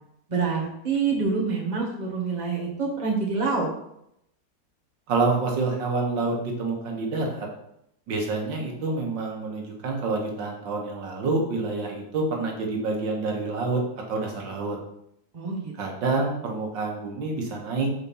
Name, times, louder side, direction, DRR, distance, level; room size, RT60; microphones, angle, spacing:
voice 1, 0.3-3.7 15.3-15.7, right 4 dB, 25° right, -3 dB, 1.7 m, -26 dB
voice 2, 5.1-7.5 8.1-13.8 14.1-14.8 15.8-17.9, right 3 dB, 90° right, 0 dB, 2.0 m, -27 dB
6.2 x 4.2 x 5.5 m, 0.75 s
omnidirectional pair, 1.9 m